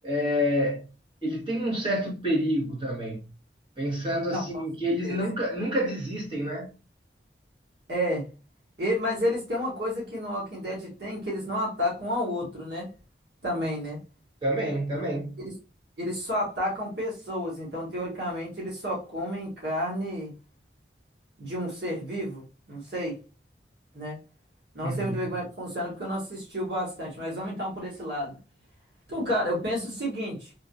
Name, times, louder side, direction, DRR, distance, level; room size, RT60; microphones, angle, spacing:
voice 1, 0.0-0.8 1.2-3.2 3.8-6.7 14.4-15.4 24.8-25.2, equal, 30° right, 1.5 m, -28 dB
voice 2, 4.3-4.6 5.0-5.2 7.9-8.2 8.8-12.9 13.4-14.0 15.4-15.5 16.0-20.3 21.4-23.2 23.9-24.2 24.7-28.4 29.1-30.5, equal, 75° right, 1.7 m, -31 dB
3.8 x 2.8 x 2.6 m
head